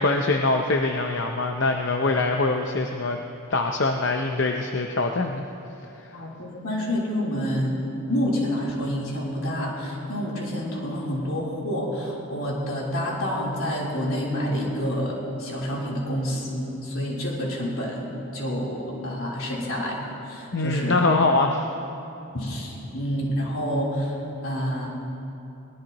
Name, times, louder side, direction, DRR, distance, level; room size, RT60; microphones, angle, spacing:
voice 1, 0.0-3.2 3.5-5.5 6.0-6.1 20.5-21.6, left 3 dB, 55° left, 3 dB, 0.7 m, -23 dB
voice 2, 6.1-7.8 8.1-20.0 20.3-21.0 22.3-24.9, equal, 75° left, -4 dB, 3.7 m, -28 dB
21.5 x 19.0 x 3.0 m, 2.8 s
head